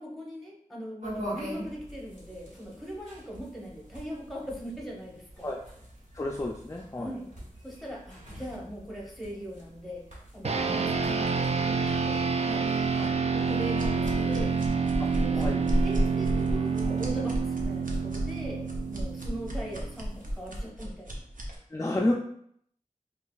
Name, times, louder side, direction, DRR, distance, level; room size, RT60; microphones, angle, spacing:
voice 1, 0.0-5.5 7.0-7.3 7.6-10.0 10.3-11.3 11.6-12.7 13.0-14.5 15.1-21.2, right 1 dB, ahead, -3 dB, 1.1 m, -40 dB
sound 1, 1.0-20.7, equal, 70° right, 1.5 m, -42 dB
voice 2, 6.1-7.2 13.0-13.1 15.0-15.1 15.4-15.6 21.7-22.1, left 1 dB, 25° left, 0 dB, 0.4 m, -30 dB
sound 2, 10.4-20.1, right 5 dB, 55° right, 0.4 m, -28 dB
sound 3, 13.8-21.6, equal, 90° right, 0.6 m, -33 dB
4.9 x 2.4 x 2.3 m, 0.68 s
wide cardioid pair, 50°, 13 cm